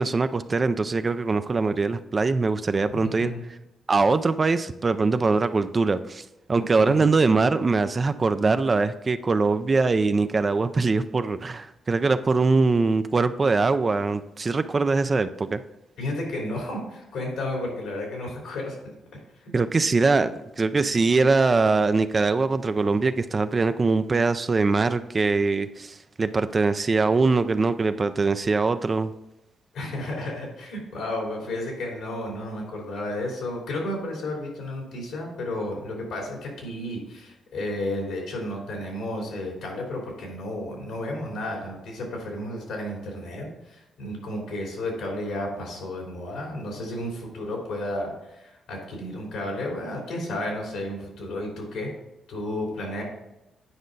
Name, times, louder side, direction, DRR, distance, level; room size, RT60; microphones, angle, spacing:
voice 1, 0.0-3.3 3.9-6.2 6.5-15.6 19.5-20.3 20.6-29.1, right 3 dB, 35° right, 11 dB, 0.4 m, -22 dB
voice 2, 2.9-3.4 6.8-7.1 16.0-18.8 19.4-19.5 29.7-51.9 52.3-53.0, left 1 dB, 85° left, -1 dB, 3.2 m, -32 dB
9.7 x 5.1 x 4.0 m, 0.94 s
cardioid pair, 75°, 0 cm